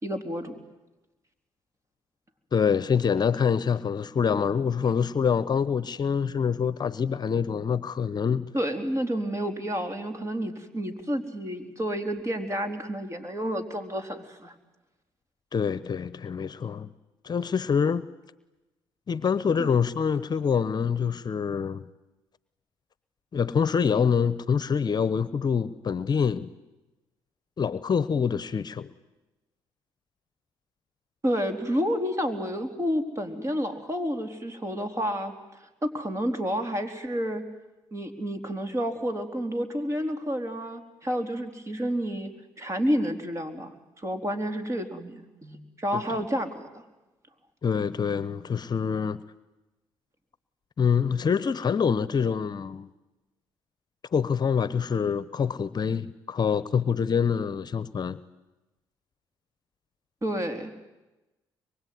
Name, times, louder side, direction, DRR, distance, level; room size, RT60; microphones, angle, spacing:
voice 1, 0.0-0.6 8.5-14.5 19.6-19.7 31.2-35.3 35.6-37.4 37.9-42.3 42.6-46.8 60.2-60.7, equal, 30° right, 3.9 m, -30 dB
voice 2, 2.5-8.5 15.5-16.9 17.2-18.1 19.1-21.8 23.3-26.5 27.6-28.9 47.6-49.2 50.8-52.9 54.1-58.2, left 6 dB, 45° left, 1.0 m, -25 dB
24.5 x 23.0 x 9.6 m
supercardioid pair, 60°, 10 cm